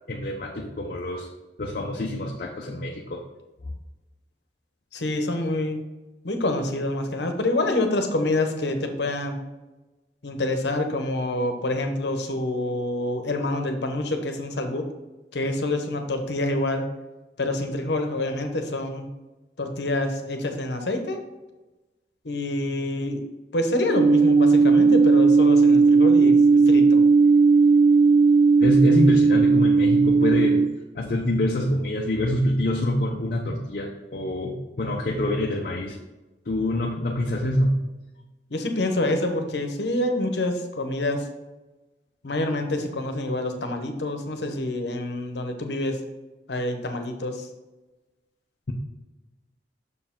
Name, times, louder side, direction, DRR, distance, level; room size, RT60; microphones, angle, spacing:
voice 1, 0.1-1.3 1.6-3.2 28.6-30.6 30.9-36.0 36.5-37.9, left 1 dB, 55° left, 0 dB, 0.6 m, -25 dB
voice 2, 4.9-5.8 6.2-9.4 10.2-14.9 15.3-16.8 17.4-19.1 19.6-21.2 22.2-23.2 23.5-27.0 38.5-41.3 42.2-46.0 46.5-47.5, left 1 dB, 75° left, 5 dB, 0.9 m, -27 dB
sound 1, 23.9-30.7, right 4 dB, 70° right, 0.4 m, -16 dB
6.5 x 4.7 x 3.6 m, 1.1 s
head